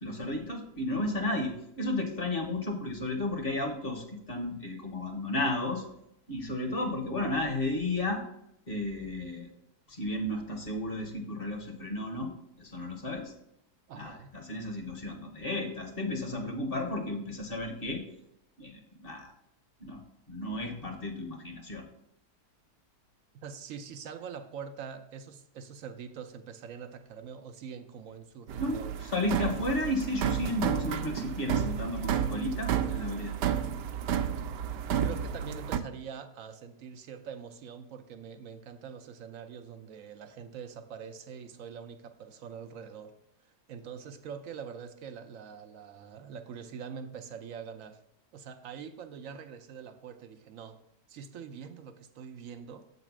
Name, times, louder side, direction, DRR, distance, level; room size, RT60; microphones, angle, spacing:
voice 1, 0.0-5.8 6.3-8.2 8.7-9.5 9.9-12.3 12.6-13.3 13.9-18.0 18.6-19.3 19.8-20.0 20.3-21.8 28.6-33.3, left 1 dB, 40° left, 1.3 m, -33 dB
voice 2, 13.9-14.3 23.4-29.0 35.0-43.1 43.4-48.0 48.3-50.8 51.1-52.9, right 7 dB, 65° right, 0.8 m, -44 dB
sound 1, 28.5-35.8, right 9 dB, 85° right, 1.2 m, -31 dB
7.6 x 4.1 x 6.0 m
omnidirectional pair, 1.8 m